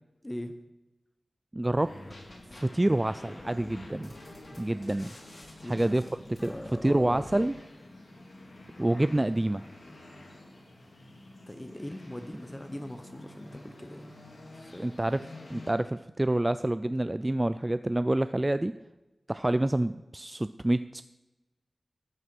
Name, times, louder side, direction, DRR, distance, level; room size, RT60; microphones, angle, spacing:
voice 1, 0.2-0.6 5.4-7.5 11.5-14.1 14.5-14.8, left 1 dB, 15° left, 7 dB, 0.8 m, -41 dB
voice 2, 1.5-1.9 2.5-4.1 4.6-5.1 5.6-6.0 6.4-6.5 6.8-7.5 8.8-9.6 14.8-18.8 19.3-21.0, right 1 dB, 20° right, 12 dB, 0.3 m, -27 dB
sound 1, 1.8-15.7, left 1 dB, 70° left, 4.0 m, -49 dB
sound 2, 1.8-2.6 3.0-7.4, left 1 dB, 45° left, 4.4 m, -50 dB
13.0 x 7.9 x 6.1 m, 1.1 s
wide cardioid pair, 80°, 0 cm